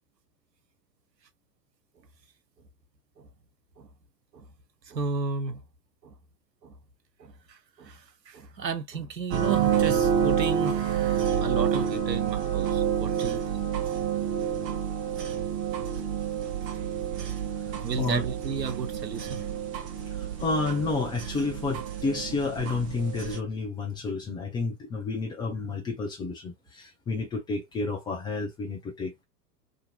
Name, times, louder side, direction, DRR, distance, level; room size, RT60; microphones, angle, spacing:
voice 1, 4.9-5.6 6.0-6.1 6.6-6.8 7.2-13.7 17.8-19.5, right 5 dB, 85° right, 0.7 m, -34 dB
sound 1, 9.3-23.4, right 8 dB, 35° right, 0.9 m, -28 dB
voice 2, 20.4-29.2, left 3 dB, 10° left, 0.4 m, -30 dB
2.6 x 2.4 x 2.7 m
figure-of-eight pair, 90°, 49 cm